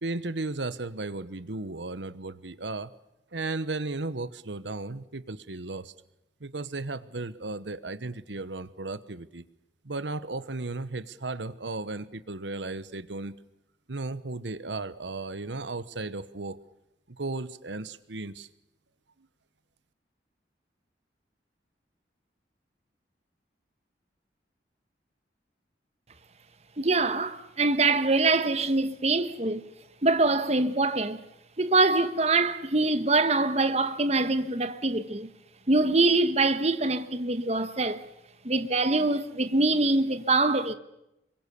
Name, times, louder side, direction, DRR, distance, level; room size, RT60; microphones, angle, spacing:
voice 1, 0.0-2.9 3.3-5.9 6.4-9.4 9.8-13.4 13.9-16.6 17.1-18.5, right 3 dB, 80° right, 1.1 m, -35 dB
voice 2, 26.8-29.6 30.0-31.2 31.6-35.3 35.7-38.0 38.4-40.7, right 3 dB, 35° right, 1.3 m, -24 dB
26.5 x 24.0 x 7.0 m
head